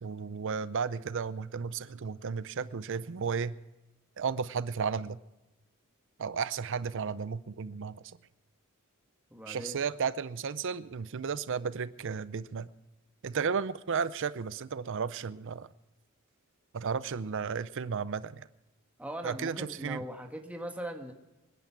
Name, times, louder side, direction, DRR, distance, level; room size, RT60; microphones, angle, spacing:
voice 1, 0.0-3.6 4.2-5.2 6.2-8.0 9.5-12.7 13.2-15.7 16.7-18.5 19.2-20.0, right 6 dB, 60° right, 16 dB, 0.5 m, -33 dB
voice 2, 9.3-9.8 19.0-21.1, equal, 5° right, 3 dB, 1.6 m, -40 dB
25.0 x 10.5 x 4.7 m, 1.0 s
head